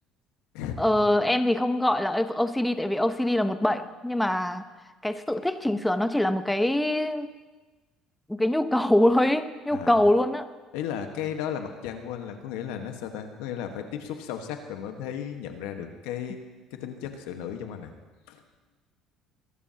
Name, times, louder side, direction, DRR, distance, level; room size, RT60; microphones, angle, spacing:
voice 1, 0.8-4.6 5.0-7.3 8.3-10.5, left 1 dB, 5° left, 10 dB, 0.7 m, -24 dB
voice 2, 10.7-16.4 16.7-17.9 18.3-18.4, left 9 dB, 85° left, 6 dB, 1.4 m, -35 dB
23.0 x 12.5 x 2.9 m, 1.2 s
supercardioid pair, 90°, 0 cm